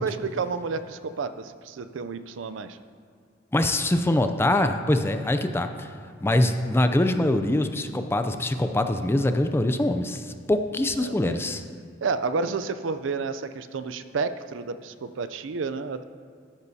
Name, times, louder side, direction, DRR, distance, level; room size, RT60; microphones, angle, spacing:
voice 1, 0.0-2.8 11.0-11.4 12.0-16.0, right 4 dB, 75° right, 11 dB, 0.5 m, -30 dB
voice 2, 3.5-5.9 6.2-11.6, left 1 dB, 15° left, 8 dB, 0.4 m, -24 dB
12.5 x 10.5 x 2.8 m, 2.2 s
head